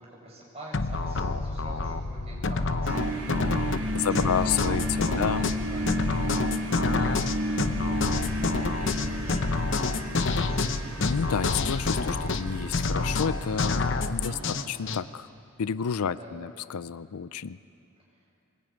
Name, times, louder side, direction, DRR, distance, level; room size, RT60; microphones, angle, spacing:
voice 1, 0.0-5.9 6.7-9.6 10.1-10.7 14.2-14.8 16.0-16.4, right 1 dB, 25° right, -4 dB, 7.0 m, -46 dB
sound 1, 0.7-15.0, left 3 dB, 55° left, 0.9 m, -28 dB
sound 2, 2.8-13.9, equal, 80° right, 5.0 m, -32 dB
voice 2, 3.9-5.5 11.0-15.3 15.6-17.6, left 7 dB, 80° left, 16 dB, 0.5 m, -30 dB
22.5 x 21.0 x 9.3 m, 2.7 s
head